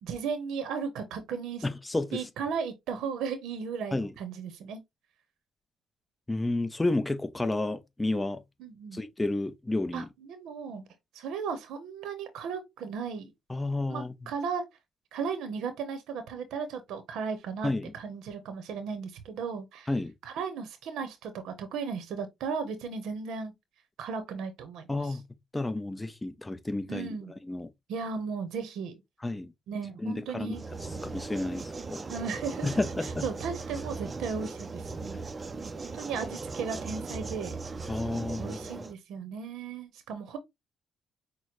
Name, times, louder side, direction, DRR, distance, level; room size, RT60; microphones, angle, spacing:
voice 1, 0.0-1.6 2.1-4.8 8.6-9.0 9.9-10.9 11.1-13.3 13.9-14.6 15.1-19.9 20.2-23.5 24.0-25.2 26.9-27.3 27.9-29.0 29.7-30.6 32.1-35.2 35.7-37.6 38.4-40.4, right 6 dB, 85° right, 0.8 m, -36 dB
voice 2, 1.6-2.2 3.9-4.1 6.3-8.4 8.9-10.1 13.5-14.1 17.6-17.9 19.9-20.1 24.9-25.2 25.5-27.1 27.4-27.7 29.2-29.5 30.0-30.6 31.0-32.0 32.6-33.3 37.9-38.8, left 2 dB, 15° left, 0.6 m, -31 dB
sound 1, 30.5-38.9, right 3 dB, 30° right, 0.5 m, -38 dB
6.0 x 2.1 x 3.0 m
cardioid pair, 90°, 0 cm